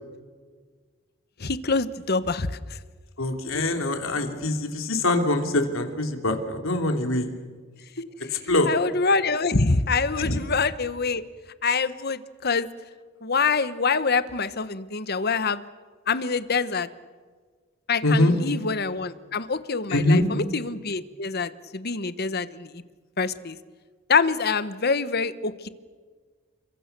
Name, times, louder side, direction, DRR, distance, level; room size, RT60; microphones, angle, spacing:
voice 1, 1.4-2.8 8.2-8.4 8.6-11.2 11.6-12.7 13.2-15.6 16.1-16.9 17.9-22.8 23.2-23.6 24.1-25.7, left 4 dB, 50° left, 13 dB, 1.2 m, -25 dB
voice 2, 3.2-7.3 8.5-8.7 10.2-10.3 18.0-18.3 19.9-20.3, left 2 dB, 80° left, 5 dB, 3.2 m, -23 dB
30.0 x 24.5 x 6.9 m, 1.5 s
head